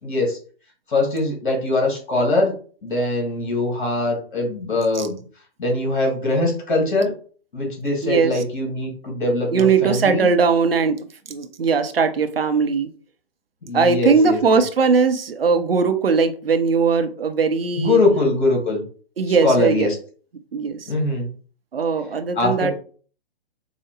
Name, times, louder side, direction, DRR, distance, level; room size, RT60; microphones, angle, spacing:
voice 1, 0.0-0.4 0.9-2.5 2.8-5.2 5.6-7.1 7.5-10.3 13.6-14.4 17.8-18.8 19.4-20.0 20.9-21.3 22.4-22.7, left 2 dB, 55° left, 1 dB, 1.8 m, -22 dB
voice 2, 8.0-8.4 9.5-12.9 13.7-18.0 19.2-19.9 20.5-20.9 21.7-22.7, right 5 dB, 70° right, 8 dB, 0.7 m, -19 dB
4.7 x 2.1 x 3.1 m, 0.42 s
figure-of-eight pair, 130°, 30 cm